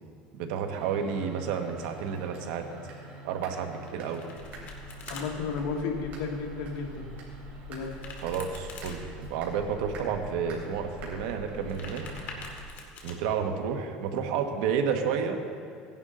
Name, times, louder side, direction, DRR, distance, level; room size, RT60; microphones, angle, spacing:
voice 1, 0.3-2.6 3.2-4.2 8.2-12.0 13.0-15.4, right 7 dB, 85° right, 5 dB, 1.3 m, -31 dB
sound 1, 0.7-12.5, right 2 dB, 50° right, 3.4 m, -46 dB
Domestic sounds home sounds, 3.9-5.3 7.8-9.0 11.5-13.1, left 4 dB, 50° left, 1.9 m, -45 dB
sound 2, 4.4-12.6, left 1 dB, 5° right, 3.0 m, -46 dB
voice 2, 5.1-7.1 7.7-8.0, left 5 dB, 75° left, 1 dB, 1.8 m, -33 dB
17.0 x 11.0 x 3.8 m, 2.2 s
cardioid pair, 160°, 4 cm